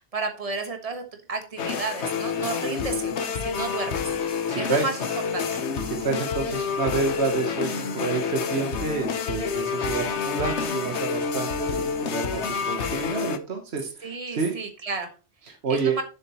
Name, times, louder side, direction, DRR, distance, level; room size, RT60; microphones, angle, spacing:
voice 1, 0.1-1.0 1.3-4.0 4.6-4.9 5.3-5.6 14.0-15.1 15.7-16.0, right 3 dB, 35° right, 4 dB, 1.5 m, -32 dB
sound 1, 1.6-13.4, left 6 dB, 90° left, 1.2 m, -28 dB
voice 2, 4.5-5.1 5.8-14.5 15.4-16.0, right 4 dB, 70° right, 2 dB, 1.5 m, -29 dB
11.5 x 6.9 x 3.0 m, 0.34 s
omnidirectional pair, 1.1 m